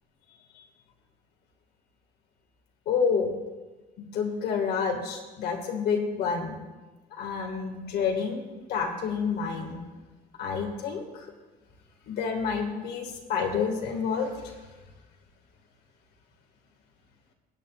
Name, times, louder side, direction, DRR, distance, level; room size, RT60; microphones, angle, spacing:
voice 1, 2.9-3.3 4.0-6.6 7.1-8.4 8.7-9.8 10.4-11.3 12.1-14.7, left 6 dB, 75° left, 3 dB, 1.9 m, -29 dB
20.5 x 8.9 x 2.4 m, 1.2 s
cardioid pair, 110°, 17 cm